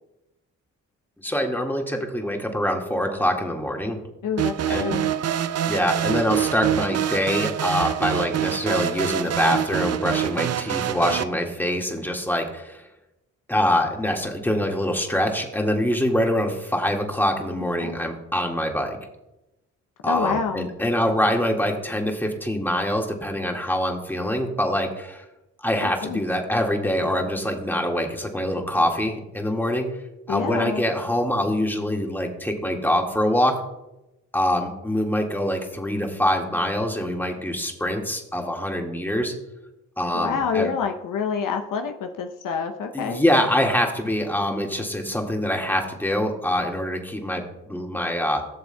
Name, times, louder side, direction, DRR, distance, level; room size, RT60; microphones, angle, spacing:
voice 1, 1.2-4.0 4.7-5.0 5.7-12.8 13.5-19.0 20.0-25.2 25.6-29.9 30.3-33.6 34.3-39.3 40.0-40.7 42.9-48.4, left 1 dB, 5° left, 2 dB, 1.9 m, -24 dB
voice 2, 4.2-5.1 17.6-18.0 20.1-20.7 25.8-26.2 30.3-30.8 40.1-43.2, left 6 dB, 60° left, 5 dB, 0.8 m, -27 dB
sound 1, 4.4-11.2, right 10 dB, 45° right, 0.5 m, -25 dB
15.0 x 6.8 x 2.3 m, 0.92 s
hypercardioid pair, 40°, 36 cm